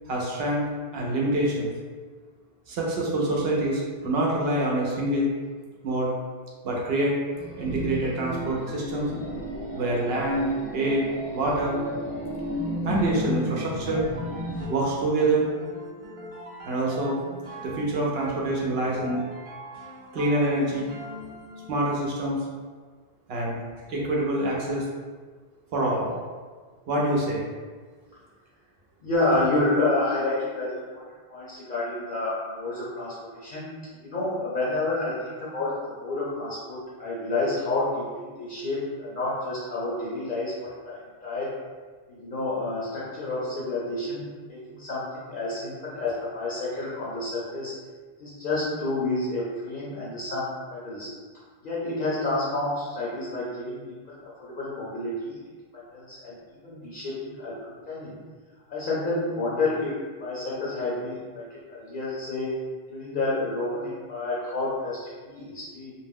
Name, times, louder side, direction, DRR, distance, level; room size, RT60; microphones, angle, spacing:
voice 1, 0.1-0.7 0.9-1.7 2.7-5.3 5.8-6.1 6.6-7.1 7.6-9.1 9.7-11.1 11.3-11.8 12.8-14.1 14.7-15.5 16.7-17.2 17.6-19.2 20.1-20.9 21.7-22.4 23.3-23.6 23.9-24.9 25.7-26.1 26.9-27.4, right 1 dB, 70° right, -3 dB, 0.8 m, -26 dB
Ambient Space Ship, 7.3-14.7, left 1 dB, 20° left, 0.4 m, -33 dB
sound 1, 12.9-22.1, left 1 dB, 40° right, 0.6 m, -41 dB
voice 2, 29.0-31.0 31.3-33.7 34.0-40.5 40.8-41.5 42.1-47.7 48.2-51.1 51.6-53.8 54.1-55.4 55.7-58.1 58.7-62.5 62.9-65.9, left 2 dB, 55° left, -7 dB, 0.8 m, -29 dB
2.6 x 2.0 x 3.4 m, 1.5 s
omnidirectional pair, 1.1 m